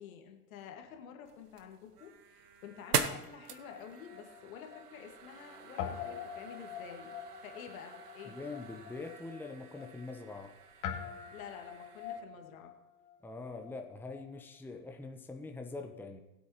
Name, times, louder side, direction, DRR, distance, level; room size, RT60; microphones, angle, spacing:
voice 1, 0.0-8.4 11.3-12.7, left 8 dB, 65° left, 4 dB, 2.0 m, -50 dB
sound 1, 1.3-12.2, right 7 dB, 80° right, 1.0 m, -42 dB
Guitar, 3.7-5.5 5.7-14.4, left 8 dB, 40° left, 2.1 m, -45 dB
voice 2, 8.2-10.5 13.2-16.2, left 3 dB, 5° left, 4 dB, 1.0 m, -44 dB
20.5 x 8.4 x 3.1 m, 1.1 s
figure-of-eight pair, 85°, 46 cm